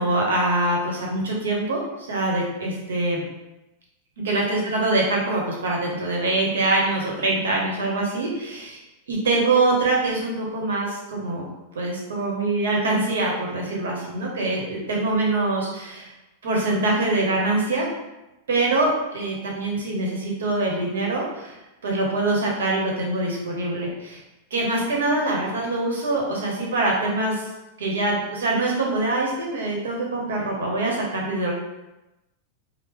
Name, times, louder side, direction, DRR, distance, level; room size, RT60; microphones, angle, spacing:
voice 1, 0.0-3.3 4.2-8.8 9.1-11.4 11.7-16.1 16.4-17.9 18.5-21.6 21.8-24.2 24.5-27.5 27.8-31.5, right 2 dB, 90° right, -2 dB, 1.0 m, -24 dB
3.1 x 2.1 x 3.7 m, 1.0 s
hypercardioid pair, 125°, 0 cm